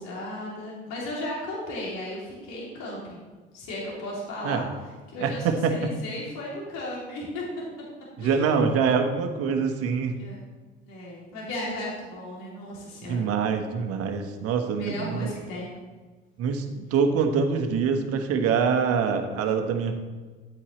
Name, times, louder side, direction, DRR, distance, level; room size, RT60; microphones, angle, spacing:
voice 1, 0.0-3.2 3.5-4.7 5.1-7.4 8.2-8.5 10.2-10.4 10.8-13.2 14.8-15.7, left 1 dB, 65° left, -4 dB, 3.0 m, -35 dB
voice 2, 5.2-5.9 8.2-10.2 13.1-15.3 16.4-19.9, right 6 dB, 55° right, 5 dB, 1.2 m, -25 dB
10.5 x 8.4 x 3.2 m, 1.4 s
hypercardioid pair, 65°, 29 cm